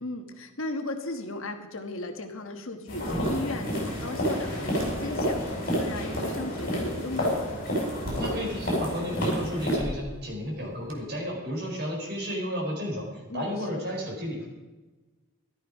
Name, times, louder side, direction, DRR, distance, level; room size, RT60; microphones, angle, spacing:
voice 1, 0.0-7.3 13.3-13.5, left 2 dB, 65° left, 6 dB, 1.4 m, -36 dB
sound 1, 2.9-9.8, equal, 40° left, 6.1 m, -29 dB
sound 2, 4.6-11.0, equal, 60° right, 2.2 m, -44 dB
voice 2, 8.2-14.5, equal, 45° right, -1 dB, 4.6 m, -33 dB
14.0 x 12.5 x 5.2 m, 1.2 s
head